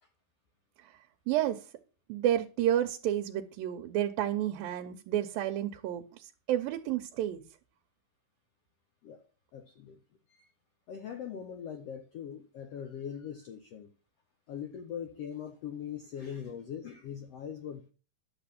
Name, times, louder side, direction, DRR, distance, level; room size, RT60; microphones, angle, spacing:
voice 1, 1.3-1.6 2.1-6.0 6.5-7.4, right 12 dB, 85° right, 2.6 m, -30 dB
voice 2, 9.5-10.0 10.3-10.5 10.9-13.9 14.5-17.9, left 8 dB, 80° left, 1.4 m, -41 dB
11.0 x 7.0 x 5.9 m
omnidirectional pair, 4.1 m